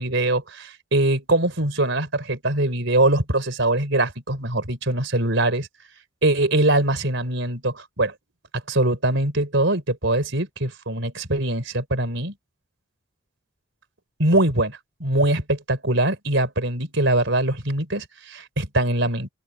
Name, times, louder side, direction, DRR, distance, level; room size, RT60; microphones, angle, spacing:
voice 1, 0.0-5.7 6.2-8.1 8.7-12.3 14.2-19.3, right 2 dB, 60° right, 4.2 m, -22 dB
open air
head